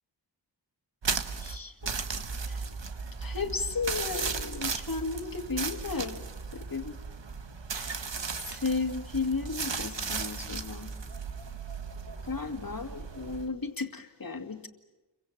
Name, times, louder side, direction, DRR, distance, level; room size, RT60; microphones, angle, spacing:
sound 1, 1.0-13.5, right 5 dB, 75° right, 1.5 m, -36 dB
voice 1, 1.4-1.9 2.4-2.6 3.2-6.2 6.5-7.0 7.7-8.0 8.4-10.9 12.2-14.7, left 4 dB, 50° left, 6 dB, 2.3 m, -34 dB
29.5 x 24.0 x 7.4 m, 1.1 s
wide cardioid pair, 55°, 44 cm